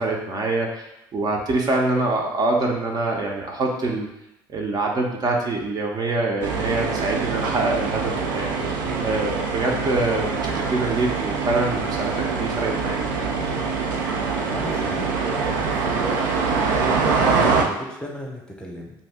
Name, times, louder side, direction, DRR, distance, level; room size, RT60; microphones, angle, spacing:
voice 1, 0.0-4.1 4.5-8.5 9.0-13.1, right 2 dB, 45° right, 0 dB, 0.6 m, -25 dB
sound 1, 6.4-17.6, right 5 dB, 90° right, 0.4 m, -24 dB
voice 2, 8.6-9.1 14.5-15.1 15.4-18.9, equal, 10° left, -1 dB, 0.8 m, -34 dB
2.6 x 2.2 x 3.5 m, 0.85 s
hypercardioid pair, 65°, 10 cm